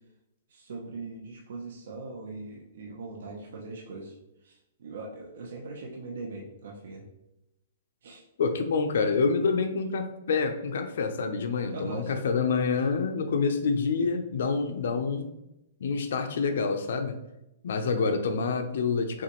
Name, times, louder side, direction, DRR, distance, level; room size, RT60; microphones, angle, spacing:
voice 1, 0.5-4.1 4.4-7.1 8.0-8.2 11.7-12.3 12.7-12.8, right 3 dB, 65° right, -1 dB, 0.8 m, -40 dB
voice 2, 8.4-15.3 15.8-17.2 17.6-19.2, left 4 dB, 65° left, 7 dB, 0.6 m, -27 dB
5.9 x 2.5 x 3.0 m, 0.90 s
hypercardioid pair, 170°, 0 cm